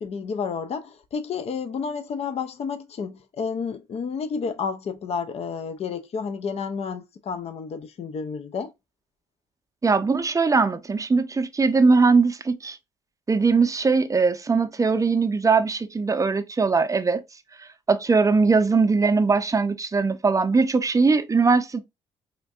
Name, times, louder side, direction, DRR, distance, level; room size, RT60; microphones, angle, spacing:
voice 1, 0.0-8.7, left 5 dB, 50° left, 0.5 m, -31 dB
voice 2, 9.8-12.8 13.3-17.2 17.9-21.8, right 4 dB, 25° right, 0.6 m, -20 dB
4.3 x 2.5 x 2.4 m
hypercardioid pair, 55°, 14 cm